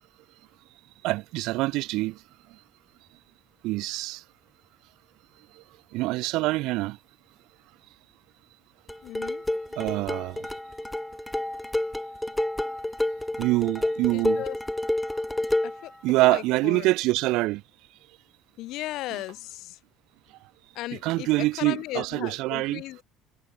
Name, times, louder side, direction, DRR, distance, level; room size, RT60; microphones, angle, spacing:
voice 1, 1.0-2.1 3.6-4.2 5.9-7.0 9.8-10.4 13.4-14.4 16.0-17.6 21.0-22.8, right 20 dB, 70° right, 5.7 m, -25 dB
sound 1, 8.9-15.9, left 1 dB, 5° left, 1.8 m, -29 dB
voice 2, 9.0-9.4 14.1-14.6 15.6-15.9 16.2-16.9 18.6-19.8 20.7-23.0, left 17 dB, 65° left, 5.6 m, -36 dB
cardioid pair, 160°, 0 cm